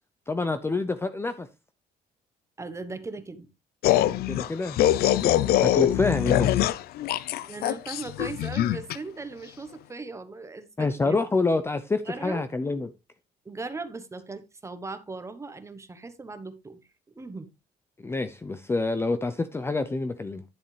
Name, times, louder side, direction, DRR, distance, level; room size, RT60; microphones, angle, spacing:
voice 1, 0.3-1.5 4.3-4.8 5.2-6.7 7.2-7.4 10.8-12.9 18.0-20.4, left 3 dB, 15° left, 0.6 m, -27 dB
voice 2, 2.6-3.5 7.4-11.2 12.0-12.4 13.4-16.8 17.1-17.5, right 3 dB, 15° right, 1.1 m, -38 dB
sound 1, 3.8-9.0, left 12 dB, 70° left, 0.5 m, -23 dB
10.5 x 7.0 x 3.2 m
cardioid pair, 125°, 16 cm